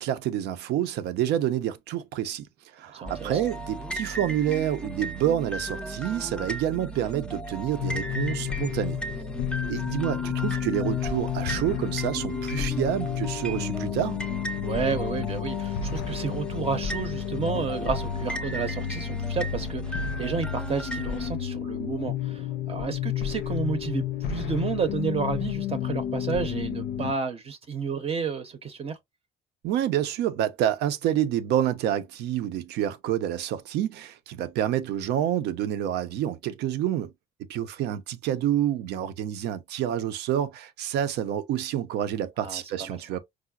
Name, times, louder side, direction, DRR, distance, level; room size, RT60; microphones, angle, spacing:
voice 1, 0.0-2.5 2.8-9.0 9.7-14.2 29.6-37.1 37.4-43.2, right 11 dB, 80° right, 0.5 m, -28 dB
voice 2, 2.9-3.4 14.6-29.0 42.4-43.1, right 5 dB, 35° right, 0.6 m, -31 dB
sound 1, 3.1-21.3, right 2 dB, 5° left, 0.4 m, -36 dB
sound 2, 7.8-27.1, left 10 dB, 80° left, 0.5 m, -31 dB
4.7 x 2.0 x 2.3 m
cardioid pair, 110°, 17 cm